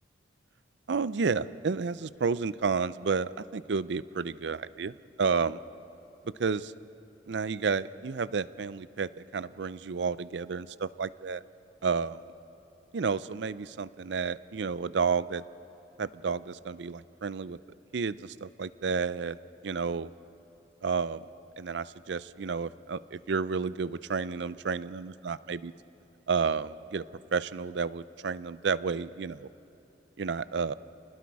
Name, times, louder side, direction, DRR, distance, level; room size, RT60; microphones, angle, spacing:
voice 1, 0.9-5.6 6.2-6.7 7.3-11.4 11.8-12.2 12.9-15.4 16.0-17.6 17.9-19.4 19.6-20.1 20.8-21.2 21.6-25.7 26.3-27.0 27.3-29.5 30.2-30.7, right 5 dB, 70° right, 17 dB, 0.5 m, -31 dB
29.0 x 20.0 x 4.7 m, 2.9 s
head